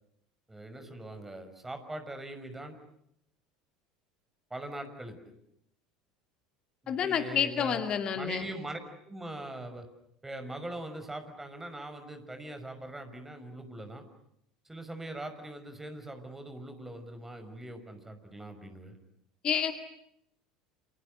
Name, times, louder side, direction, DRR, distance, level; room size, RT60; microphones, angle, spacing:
voice 1, 0.5-2.8 4.5-5.2 6.8-7.8 8.1-8.8 9.0-9.9 10.2-14.0 14.6-19.0, right 1 dB, 10° right, 7 dB, 5.9 m, -42 dB
voice 2, 6.9-8.4 19.4-19.7, left 8 dB, 40° left, 7 dB, 2.4 m, -29 dB
29.5 x 29.0 x 6.8 m, 0.76 s
figure-of-eight pair, 70°, 3 cm